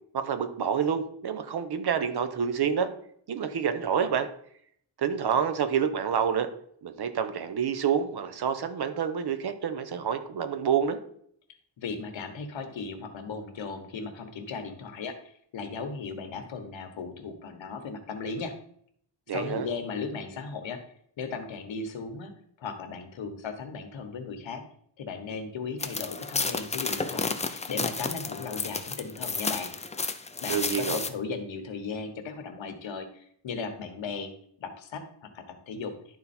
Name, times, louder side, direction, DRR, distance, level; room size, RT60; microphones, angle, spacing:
voice 1, 0.1-2.9 3.3-4.3 5.0-6.5 6.8-11.0 19.3-19.7 30.5-31.0, right 7 dB, 55° right, 9 dB, 0.9 m, -28 dB
voice 2, 11.8-18.5 19.3-20.8 21.2-22.3 22.6-24.6 25.0-29.7 30.4-34.3 34.6-35.9, left 5 dB, 80° left, 7 dB, 1.3 m, -36 dB
sound 1, 25.8-31.1, left 4 dB, 15° left, 0.4 m, -32 dB
11.5 x 4.1 x 4.3 m, 0.65 s
wide cardioid pair, 180°, 45 cm